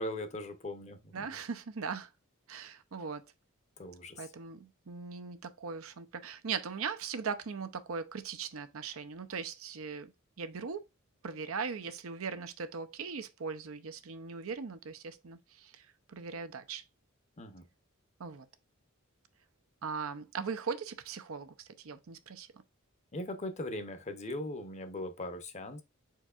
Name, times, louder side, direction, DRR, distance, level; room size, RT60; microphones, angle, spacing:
voice 1, 0.0-1.4 3.8-4.3 17.4-17.7 23.1-25.8, left 1 dB, 35° left, 0.7 m, -40 dB
voice 2, 1.1-2.1 2.5-3.2 4.2-10.1 10.4-10.8 11.2-16.8 18.2-18.5 19.8-22.5, right 5 dB, 80° right, 0.6 m, -39 dB
4.6 x 4.6 x 2.4 m
head